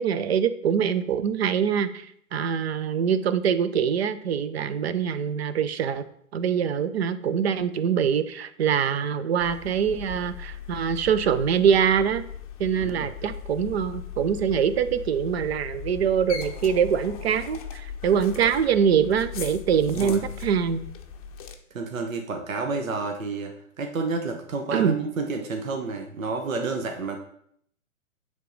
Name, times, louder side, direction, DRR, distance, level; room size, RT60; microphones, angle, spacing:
voice 1, 0.0-6.0 6.3-12.2 12.6-20.8 24.7-25.0, right 7 dB, 50° right, 12 dB, 0.6 m, -24 dB
sound 1, 9.4-21.5, left 8 dB, 25° left, 0.6 m, -38 dB
voice 2, 12.7-13.1 19.9-20.2 21.7-27.2, right 3 dB, 70° right, 4 dB, 1.0 m, -30 dB
9.0 x 3.7 x 3.9 m, 0.68 s
figure-of-eight pair, 125°, 41 cm